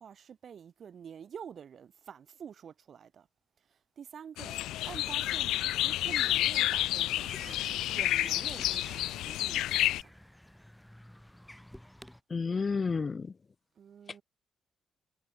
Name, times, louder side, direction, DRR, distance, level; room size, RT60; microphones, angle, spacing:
voice 1, 0.0-3.3 3.6-4.6 4.9-10.1 13.8-14.2, right 8 dB, 55° right, 7.6 m, -48 dB
sound 1, 4.4-10.0, left 15 dB, 85° left, 0.9 m, -30 dB
sound 2, 7.2-12.2, left 1 dB, 5° left, 4.0 m, -50 dB
voice 2, 12.3-13.3, left 4 dB, 35° left, 0.8 m, -30 dB
cardioid pair, 90°, 0 cm